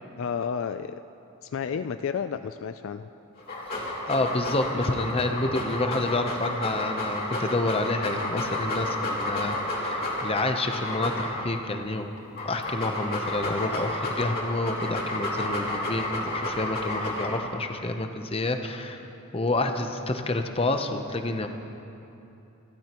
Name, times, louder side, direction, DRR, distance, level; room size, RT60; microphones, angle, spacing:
voice 1, 0.2-1.0 1.4-3.1, left 6 dB, 60° left, 10 dB, 0.3 m, -31 dB
Dog, 3.4-11.6 12.2-17.6, left 1 dB, 45° left, 2.6 m, -31 dB
voice 2, 4.1-12.1 12.4-19.0 19.3-21.5, left 2 dB, 25° left, 6 dB, 0.7 m, -28 dB
28.5 x 12.5 x 3.0 m, 2.8 s
head